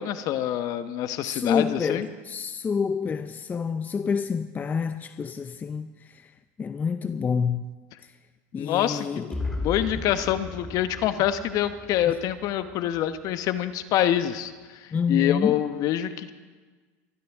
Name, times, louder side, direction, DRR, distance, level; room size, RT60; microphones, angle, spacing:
voice 1, 0.0-2.1 8.5-14.5 15.1-16.3, left 11 dB, 50° left, 1.0 m, -26 dB
voice 2, 1.2-5.9 6.6-7.6 8.5-9.4 9.9-10.0 12.1-12.2 14.9-15.5, left 6 dB, 20° left, 0.5 m, -28 dB
sound 1, 9.3-13.2, left 2 dB, 5° left, 2.7 m, -36 dB
23.5 x 13.0 x 3.6 m
supercardioid pair, 105°, 8 cm